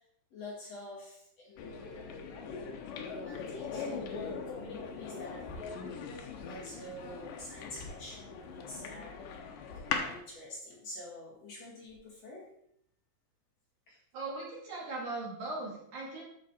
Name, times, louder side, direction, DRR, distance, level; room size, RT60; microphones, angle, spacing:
voice 1, 0.3-2.2 3.0-6.0 6.4-9.2 9.8-12.5, left 1 dB, 45° left, -4 dB, 2.4 m, -48 dB
sound 1, 1.6-10.2, left 5 dB, 85° left, 1.9 m, -40 dB
sound 2, 5.4-6.5 7.0-7.1 7.7-8.6 9.6-12.1, left 2 dB, 25° left, 3.8 m, -52 dB
voice 2, 13.9-16.2, right 2 dB, 45° right, -3 dB, 3.3 m, -39 dB
11.5 x 6.6 x 4.3 m, 0.73 s
omnidirectional pair, 5.5 m